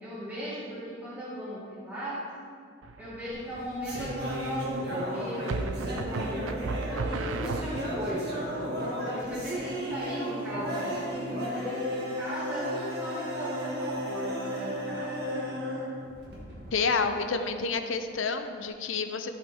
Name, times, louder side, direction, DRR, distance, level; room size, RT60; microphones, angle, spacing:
voice 1, 0.0-2.2 3.0-6.4 6.8-8.4 9.0-15.1 15.5-15.7, equal, 10° right, -11 dB, 1.9 m, -38 dB
sound 1, 2.8-3.4 5.5-8.1, right 3 dB, 90° right, 0.4 m, -34 dB
sound 2, 3.3-16.7, equal, 55° right, 2.0 m, -34 dB
voice 2, 16.7-19.3, left 4 dB, 85° left, 7 dB, 0.6 m, -29 dB
14.5 x 5.6 x 3.6 m, 2.3 s
head